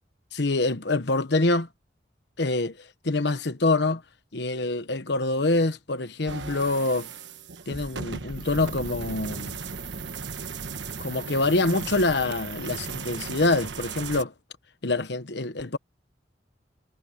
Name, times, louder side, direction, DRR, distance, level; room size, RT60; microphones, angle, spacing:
voice 1, 0.3-1.7 2.4-4.0 4.3-7.1 7.7-9.6 11.0-14.3 14.8-15.8, left 2 dB, 65° left, 1.2 m, -25 dB
sound 1, 6.3-14.2, right 5 dB, 80° right, 1.3 m, -36 dB
head